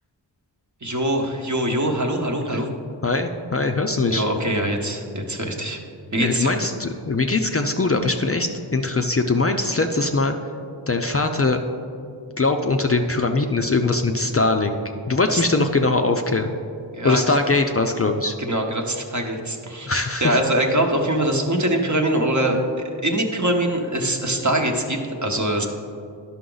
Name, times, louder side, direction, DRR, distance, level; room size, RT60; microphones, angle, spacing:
voice 1, 0.8-2.7 4.1-5.8 6.1-6.5 15.3-15.4 16.9-17.4 18.4-22.6 23.0-25.7, right 1 dB, 40° right, 3 dB, 0.9 m, -23 dB
voice 2, 3.0-4.2 6.2-10.3 10.9-11.6 12.4-14.8 15.1-16.5 17.0-18.4 19.9-20.4, left 3 dB, 35° left, 5 dB, 0.4 m, -21 dB
11.0 x 5.9 x 3.9 m, 2.5 s
wide cardioid pair, 60°, 44 cm